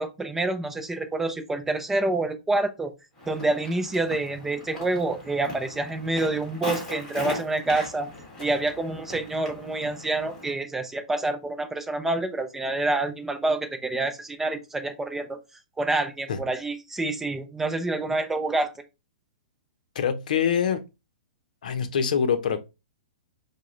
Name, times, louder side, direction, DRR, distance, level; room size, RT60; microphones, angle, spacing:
voice 1, 0.0-2.9 3.3-8.1 8.4-15.4 15.8-18.7, right 2 dB, 10° right, 0.5 m, -27 dB
Walk footsteps, 3.2-10.5, left 2 dB, 15° left, 1.6 m, -39 dB
voice 2, 19.9-20.8 21.6-22.6, left 7 dB, 70° left, 0.7 m, -24 dB
4.7 x 2.2 x 3.0 m
hypercardioid pair, 135°, 4 cm